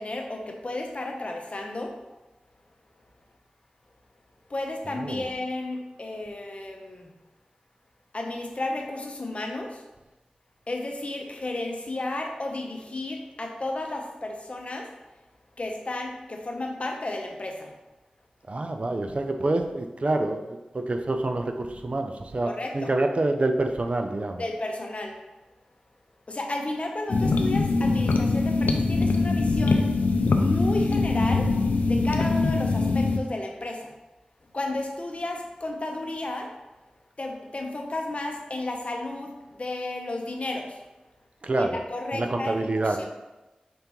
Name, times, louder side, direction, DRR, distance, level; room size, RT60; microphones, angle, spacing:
voice 1, 0.0-1.9 4.5-7.1 8.1-9.8 10.7-14.9 15.6-17.7 22.4-22.9 24.4-25.2 26.3-29.9 30.4-31.5 31.9-33.9 34.5-36.5 37.2-40.8 41.6-42.6 42.8-43.1, left 2 dB, 50° left, 2 dB, 0.7 m, -33 dB
voice 2, 4.9-5.2 18.5-24.4 41.4-41.8 42.1-43.1, right 2 dB, 50° right, 5 dB, 0.5 m, -27 dB
sound 1, 27.1-33.2, left 3 dB, 85° left, 0.4 m, -23 dB
5.2 x 3.4 x 3.0 m, 1.1 s
cardioid pair, 45°, 3 cm